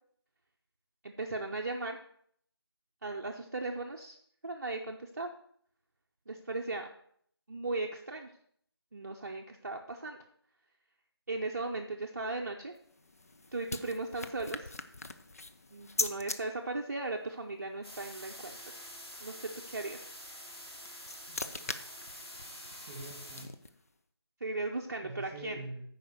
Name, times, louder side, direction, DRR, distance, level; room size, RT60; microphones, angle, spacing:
voice 1, 1.0-2.0 3.0-4.2 4.4-5.3 6.3-6.9 7.5-8.3 8.9-10.2 11.3-12.7 13.5-14.7 15.7-18.6 19.2-20.1 24.4-25.6, right 2 dB, 40° right, 1 dB, 0.7 m, -37 dB
sound 1, 12.7-16.4 20.5-23.9, left 2 dB, 35° left, 0.5 m, -41 dB
sound 2, 17.8-23.4, equal, 75° left, 3.6 m, -47 dB
voice 2, 21.3-21.9 22.8-23.5 25.0-25.8, right 2 dB, 15° right, 1 dB, 2.0 m, -46 dB
9.2 x 4.9 x 6.6 m, 0.65 s
figure-of-eight pair, 165°, 13 cm